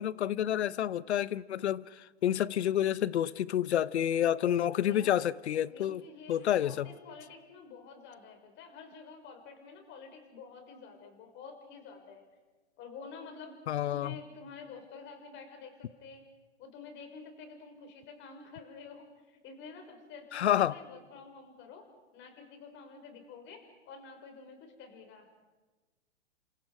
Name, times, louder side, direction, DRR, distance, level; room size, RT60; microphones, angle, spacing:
voice 1, 0.0-6.0 6.3-6.9 13.7-14.2 20.3-20.8, left 11 dB, 80° left, 0.9 m, -29 dB
voice 2, 4.7-5.3 5.6-12.2 12.8-13.6 13.9-16.2 16.6-25.3, left 5 dB, 35° left, 5.7 m, -49 dB
29.5 x 26.5 x 5.0 m
hypercardioid pair, 125°, 33 cm